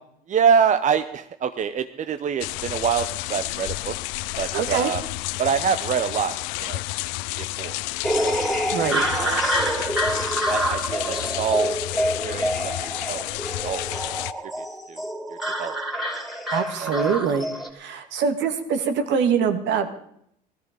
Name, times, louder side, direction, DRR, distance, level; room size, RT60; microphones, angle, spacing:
voice 1, 0.3-3.9 4.4-5.0 5.4-6.8 7.6-7.8 8.2-8.5 9.1-9.4 10.0-10.2 10.5-11.8 12.2-13.2 13.6-13.8 14.6-15.0 15.6-15.8 16.8-16.9, right 7 dB, 40° right, 10 dB, 0.8 m, -25 dB
sound 1, 2.4-14.3, left 20 dB, 85° left, 0.5 m, -31 dB
voice 2, 4.5-4.9 8.7-9.1 16.5-17.5 17.7-19.9, right 6 dB, 65° right, 8 dB, 2.0 m, -24 dB
sound 2, 8.0-17.7, equal, ahead, 3.0 m, -26 dB
16.5 x 13.5 x 5.2 m, 0.71 s
supercardioid pair, 95°, 20 cm